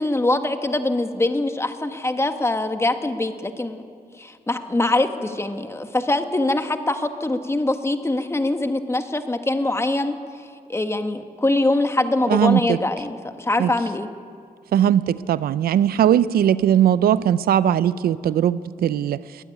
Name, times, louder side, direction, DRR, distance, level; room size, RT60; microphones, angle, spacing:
voice 1, 0.0-3.8 4.2-10.2 10.7-14.1, left 2 dB, 15° left, 7 dB, 1.5 m, -23 dB
voice 2, 12.3-12.8 13.6-13.7 14.7-19.2, right 10 dB, 85° right, 16 dB, 0.5 m, -19 dB
21.0 x 12.5 x 9.8 m, 2.3 s
cardioid pair, 80°, 15 cm